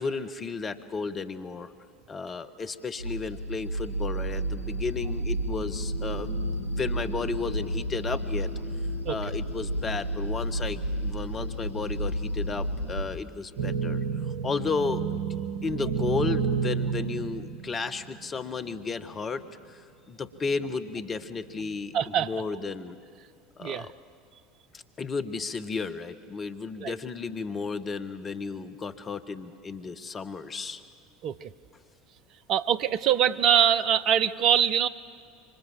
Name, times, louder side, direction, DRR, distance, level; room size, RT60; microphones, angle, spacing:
voice 1, 0.0-1.7 2.1-8.5 9.1-15.2 15.6-23.0 23.6-23.9 24.7-30.8, left 4 dB, 30° left, 10 dB, 1.4 m, -33 dB
sound 1, 3.0-13.1, right 1 dB, 80° left, 2.9 m, -31 dB
sound 2, 13.6-18.3 19.1-19.2 20.4-20.9 21.5-22.0, right 6 dB, 75° right, 1.0 m, -30 dB
voice 2, 21.9-22.3 23.6-23.9 26.8-26.9 31.2-31.5 32.5-34.9, right 9 dB, 50° right, 14 dB, 0.9 m, -23 dB
26.5 x 24.5 x 7.6 m, 2.2 s
figure-of-eight pair, 70°, 0 cm